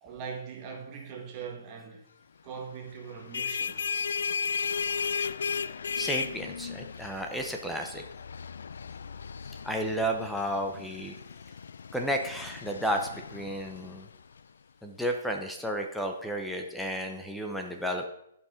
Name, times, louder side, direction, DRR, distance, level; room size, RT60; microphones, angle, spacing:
voice 1, 0.0-2.0 2.4-3.9, right 6 dB, 25° right, 1.5 m, -41 dB
sound 1, 3.1-14.4, left 6 dB, 85° left, 0.4 m, -35 dB
voice 2, 6.0-8.0 9.6-11.2 11.9-14.1 14.8-18.1, equal, ahead, 0.7 m, -32 dB
11.0 x 5.6 x 5.1 m
hypercardioid pair, 170°, 0 cm